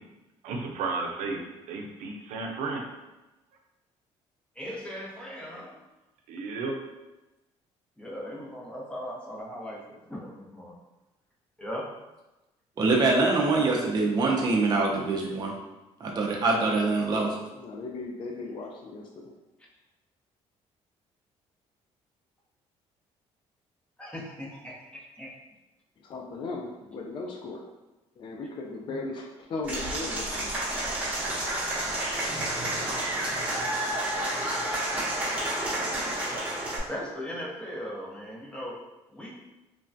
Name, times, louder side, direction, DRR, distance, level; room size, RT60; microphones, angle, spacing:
voice 1, 0.4-1.4 1.7-2.8 6.3-6.7, right 3 dB, 85° right, 2 dB, 0.5 m, -33 dB
voice 2, 4.6-5.7 8.0-9.8 10.1-10.7 11.6-11.8 24.0-25.3 28.9-29.0 36.9-38.7 39.2-39.3, equal, 10° left, -4 dB, 0.7 m, -38 dB
voice 3, 12.8-15.5 16.0-17.4, right 3 dB, 35° right, -1 dB, 0.4 m, -24 dB
voice 4, 17.6-19.3 26.1-27.6 28.2-29.2 29.5-30.5, left 3 dB, 45° left, 0 dB, 0.4 m, -37 dB
Applause / Crowd, 29.6-36.8, right 1 dB, 15° right, 1.0 m, -30 dB
3.2 x 2.2 x 2.5 m, 1.0 s
cardioid pair, 115°, 12 cm